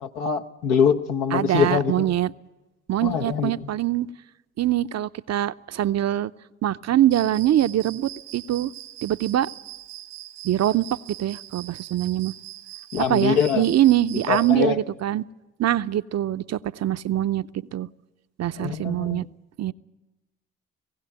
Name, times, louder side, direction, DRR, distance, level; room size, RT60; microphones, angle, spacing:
voice 1, 0.0-2.1 3.0-3.5 12.9-13.6 14.3-14.8 18.6-19.2, left 7 dB, 75° left, 5 dB, 1.2 m, -23 dB
voice 2, 1.3-2.3 2.9-4.1 4.6-6.3 6.6-8.7 9.0-9.5 10.4-12.3 13.1-15.2 15.6-17.9 18.4-19.3 19.6-19.7, right 12 dB, 45° right, 13 dB, 0.6 m, -23 dB
Cricket, 7.1-14.6, right 15 dB, 85° right, 1.5 m, -41 dB
19.5 x 16.5 x 9.0 m, 1.1 s
hypercardioid pair, 50°, 36 cm